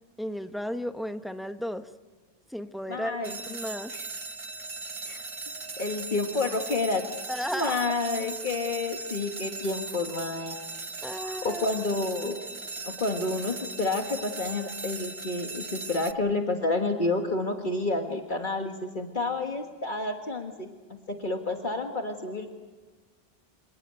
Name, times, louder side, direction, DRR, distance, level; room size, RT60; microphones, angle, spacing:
voice 1, 0.2-1.9 2.5-3.9 7.3-7.8 11.0-11.7, equal, ahead, 8 dB, 1.0 m, -34 dB
voice 2, 2.9-3.4 3.9-4.1 5.0-5.2 5.8-7.0 7.5-10.6 10.9-12.4 12.8-20.7 21.1-22.5, left 3 dB, 50° left, 3 dB, 1.8 m, -29 dB
sound 1, 3.2-16.1, right 3 dB, 30° right, 0.8 m, -39 dB
27.0 x 18.5 x 9.0 m, 1.4 s
omnidirectional pair, 1.0 m